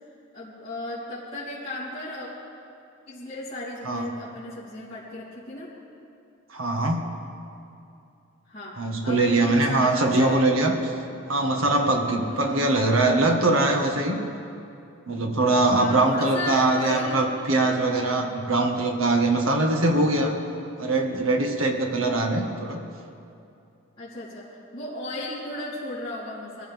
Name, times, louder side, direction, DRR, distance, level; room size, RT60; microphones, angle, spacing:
voice 1, 0.3-2.3 3.1-5.7 8.5-10.4 12.3-12.7 15.8-17.2 22.1-22.2 24.0-26.7, left 1 dB, 25° left, -13 dB, 3.9 m, -35 dB
voice 2, 6.5-7.0 8.8-10.9 11.3-14.2 15.1-20.4 20.8-22.8, right 2 dB, 80° right, 3 dB, 1.7 m, -22 dB
24.0 x 15.5 x 3.6 m, 2.6 s
head